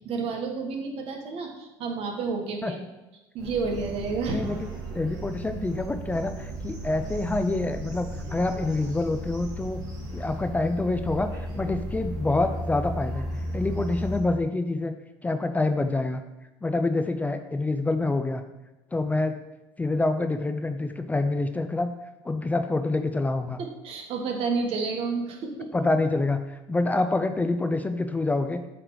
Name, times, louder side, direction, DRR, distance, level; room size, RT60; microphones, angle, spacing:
voice 1, 0.0-2.8 3.3-4.4 23.6-25.7, right 4 dB, 60° right, 3 dB, 1.3 m, -30 dB
sound 1, 3.4-14.2, right 1 dB, 35° right, 2.0 m, -35 dB
voice 2, 4.3-4.6 4.9-9.8 10.1-13.3 13.5-14.9 15.2-16.2 16.6-18.4 18.9-19.4 19.8-21.9 22.2-23.6 25.7-28.6, left 2 dB, 15° left, 8 dB, 0.4 m, -26 dB
7.6 x 3.3 x 4.6 m, 1.0 s
supercardioid pair, 90°, 11 cm